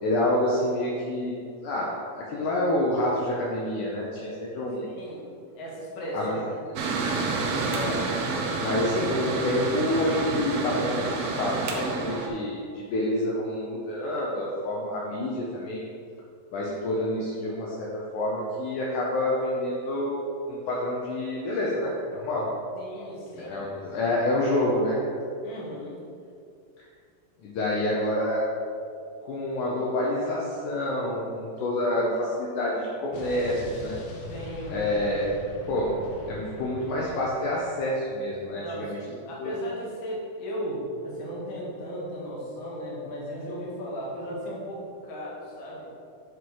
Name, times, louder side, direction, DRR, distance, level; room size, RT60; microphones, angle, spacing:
voice 1, 0.0-1.3 1.6-1.9 2.2-4.9 6.1-6.4 7.7-8.0 8.3-15.9 16.5-22.5 23.4-25.0 27.4-28.4 29.2-34.0 34.7-35.3 35.7-36.0 36.3-39.0 39.4-39.5, left 1 dB, 70° left, -4 dB, 2.2 m, -28 dB
voice 2, 4.8-5.3 5.6-6.4 22.8-23.6 25.4-26.0 34.3-34.8 38.6-45.9, equal, 45° left, -5 dB, 2.2 m, -36 dB
Mechanical fan, 6.8-12.3, right 3 dB, 75° right, 1.5 m, -29 dB
Explosion, 33.1-37.9, left 2 dB, 90° left, 1.2 m, -42 dB
9.3 x 4.9 x 4.7 m, 2.4 s
omnidirectional pair, 4.0 m